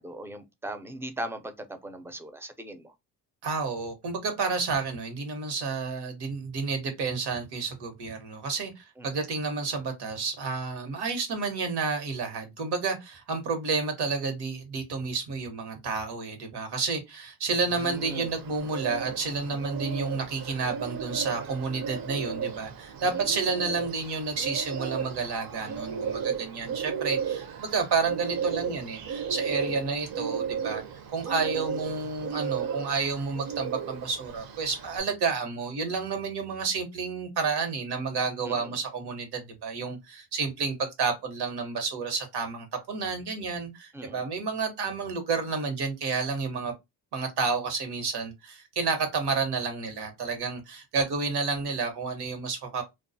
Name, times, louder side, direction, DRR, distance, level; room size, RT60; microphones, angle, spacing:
voice 1, 0.0-2.9 9.0-9.2 17.7-18.3 23.0-23.1 38.4-38.8 43.9-44.2, right 1 dB, 5° right, 0.3 m, -39 dB
voice 2, 3.4-30.8 31.1-46.7 47.1-52.8, right 4 dB, 80° right, 1.0 m, -30 dB
Bird, 17.7-35.0, right 7 dB, 65° right, 0.6 m, -34 dB
2.4 x 2.3 x 2.6 m
cardioid pair, 110°, 39 cm